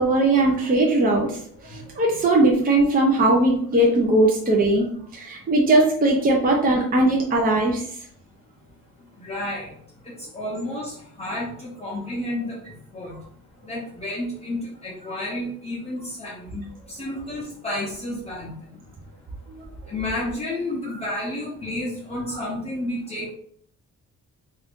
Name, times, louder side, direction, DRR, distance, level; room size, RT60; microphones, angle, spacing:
voice 1, 0.0-4.9 5.1-7.8 19.5-19.6, right 2 dB, 25° right, -1 dB, 0.6 m, -19 dB
voice 2, 9.2-9.7 10.1-12.6 12.9-13.2 13.7-16.6 16.9-18.5 19.9-23.3, left 1 dB, 20° left, -4 dB, 0.7 m, -31 dB
2.6 x 2.5 x 3.5 m, 0.62 s
cardioid pair, 105°, 33 cm